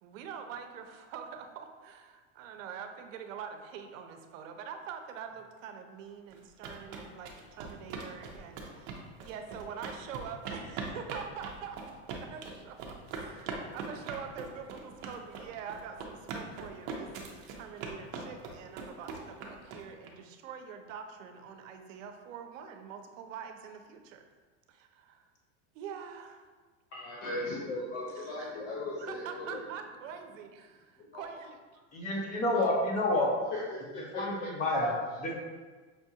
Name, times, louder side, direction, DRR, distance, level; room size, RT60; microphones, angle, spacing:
voice 1, 0.0-11.8 12.1-24.2 24.7-25.2 25.7-26.4 28.2-28.6 29.0-31.6, right 7 dB, 80° right, 5 dB, 0.6 m, -45 dB
sound 1, 6.3-20.1, right 4 dB, 45° right, 0.6 m, -41 dB
voice 2, 26.9-29.6 31.1-31.2 32.5-32.7 33.7-34.2, left 2 dB, 75° left, -6 dB, 1.0 m, -38 dB
voice 3, 31.9-33.3 34.1-35.3, left 1 dB, 20° left, -1 dB, 0.4 m, -29 dB
5.5 x 2.3 x 2.7 m, 1.4 s
supercardioid pair, 150°, 38 cm